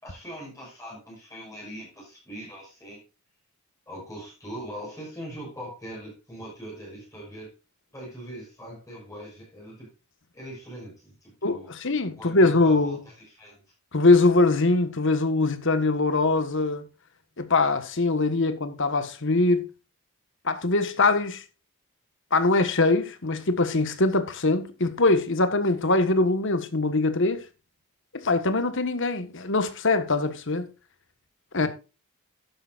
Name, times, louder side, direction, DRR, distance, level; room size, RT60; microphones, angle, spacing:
voice 1, 0.0-3.0 3.9-7.5 7.9-9.9 10.3-11.7 12.2-13.6 31.6-31.7, equal, 15° left, 5.9 m, -41 dB
voice 2, 11.4-13.0 13.9-16.9 17.4-19.7 20.4-21.4 22.3-27.4 28.1-30.7 31.5-31.7, left 3 dB, 55° left, 1.5 m, -22 dB
12.5 x 10.5 x 2.5 m
head